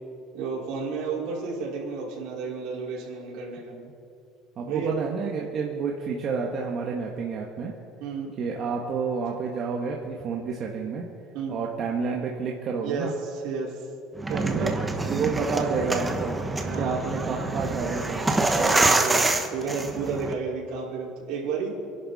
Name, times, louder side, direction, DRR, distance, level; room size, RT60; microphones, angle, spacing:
voice 1, 0.3-3.7 4.6-4.9 8.0-8.3 11.3-11.6 12.8-13.8 14.3-14.8 15.1-15.4 16.6-17.0 18.6-21.8, right 5 dB, 60° right, -4 dB, 4.7 m, -32 dB
voice 2, 4.6-7.7 8.4-11.1 11.5-13.1 14.5-14.7 15.1-16.4 16.8-18.3, right 5 dB, 35° right, -1 dB, 1.5 m, -29 dB
sound 1, 14.2-20.3, right 2 dB, 10° right, 1.0 m, -26 dB
27.0 x 11.5 x 4.2 m, 2.5 s
cardioid pair, 160°, 0 cm